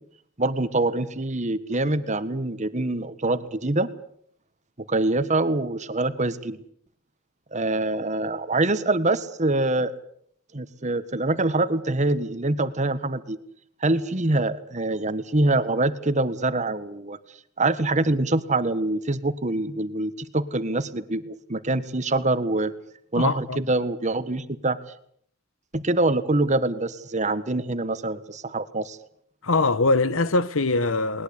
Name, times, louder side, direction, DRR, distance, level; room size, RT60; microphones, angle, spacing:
voice 1, 0.4-3.9 4.9-6.6 7.5-10.0 10.5-13.4 13.8-17.2 17.6-22.7 23.1-24.8 25.7-29.0, right 2 dB, 35° right, 1.5 m, -25 dB
voice 2, 23.2-23.6 29.4-31.2, left 3 dB, 90° left, 1.2 m, -22 dB
20.5 x 20.5 x 8.4 m
head